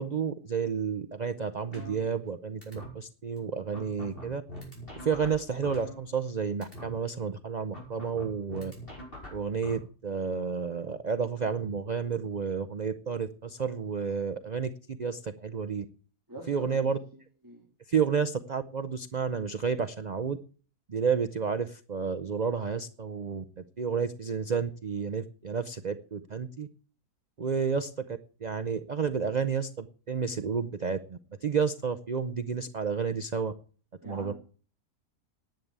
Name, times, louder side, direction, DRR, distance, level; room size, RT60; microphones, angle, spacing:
voice 1, 0.0-4.4 5.0-8.7 9.3-15.9 16.5-17.0 17.9-20.4 20.9-26.7 27.4-33.5 34.0-34.3, right 6 dB, 90° right, 10 dB, 0.3 m, -31 dB
sound 1, 1.7-2.3 2.6-2.9 3.4-3.5 3.7-6.3 6.6-6.9 7.7-9.7, left 1 dB, 35° left, 6.0 m, -43 dB
voice 2, 16.3-17.7 34.0-34.3, right 1 dB, 10° right, 1 dB, 2.3 m, -46 dB
10.5 x 8.8 x 8.1 m, 0.41 s
omnidirectional pair, 1.7 m